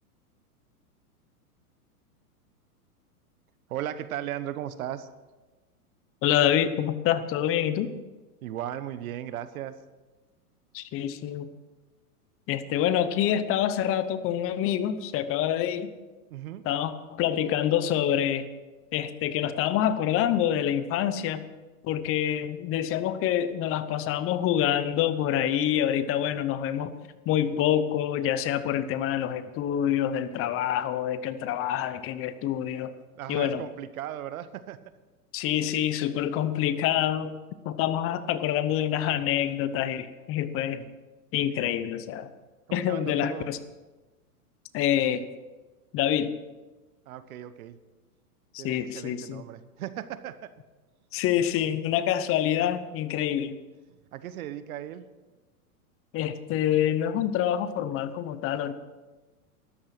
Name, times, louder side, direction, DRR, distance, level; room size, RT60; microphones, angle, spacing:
voice 1, 3.7-5.1 8.4-9.8 16.3-16.6 33.2-34.8 42.7-43.5 47.1-47.8 48.6-50.5 54.1-55.0, right 11 dB, 65° right, 13 dB, 1.2 m, -36 dB
voice 2, 6.2-7.9 10.7-11.5 12.5-15.9 16.6-18.5 18.9-21.4 21.8-26.9 27.3-32.9 33.3-33.6 35.3-37.3 37.6-40.9 41.3-42.3 42.7-43.6 44.7-45.3 45.9-46.4 48.5-49.4 51.1-53.6 56.1-58.7, left 10 dB, 30° left, 13 dB, 0.9 m, -26 dB
13.5 x 12.0 x 5.9 m, 1.2 s
hypercardioid pair, 125°, 46 cm